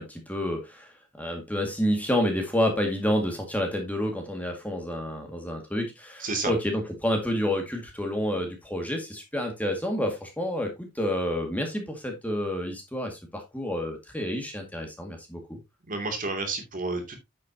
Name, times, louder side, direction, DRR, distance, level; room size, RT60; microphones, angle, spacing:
voice 1, 0.0-15.6, left 1 dB, 5° left, 2 dB, 2.0 m, -29 dB
voice 2, 6.2-6.5 15.9-17.2, right 3 dB, 35° right, 4 dB, 2.7 m, -30 dB
9.7 x 7.6 x 2.8 m, 0.22 s
head